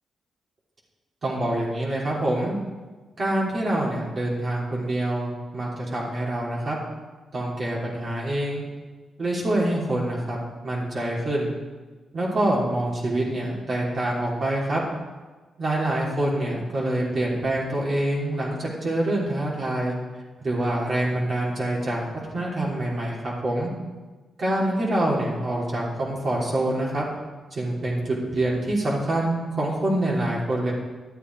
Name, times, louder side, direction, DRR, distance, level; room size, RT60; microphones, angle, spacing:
voice 1, 1.2-2.6 3.2-6.8 7.3-8.6 9.2-10.4 10.6-11.5 12.1-14.8 15.6-19.9 20.4-22.0 22.3-23.2 23.4-23.7 24.4-27.0 27.5-30.7, right 1 dB, 50° right, -4 dB, 3.2 m, -25 dB
11.0 x 8.7 x 4.6 m, 1.3 s
cardioid pair, 70°, 0 cm